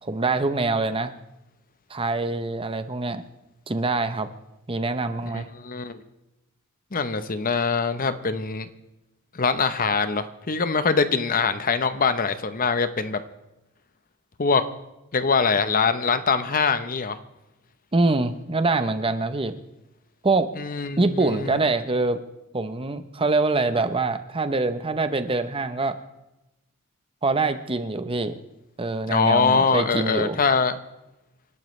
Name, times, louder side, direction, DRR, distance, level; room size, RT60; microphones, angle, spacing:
voice 1, 0.0-1.1 1.9-3.2 3.7-4.3 4.7-5.5 17.9-19.5 20.2-20.6 21.0-22.2 22.5-26.0 27.2-28.4 28.8-30.4, right 3 dB, 25° right, 10 dB, 0.8 m, -24 dB
voice 2, 5.3-6.0 6.9-8.7 9.3-13.2 14.4-14.6 15.1-17.2 20.6-21.7 29.1-30.7, left 5 dB, 40° left, 11 dB, 0.9 m, -23 dB
28.5 x 12.0 x 3.2 m, 0.94 s
head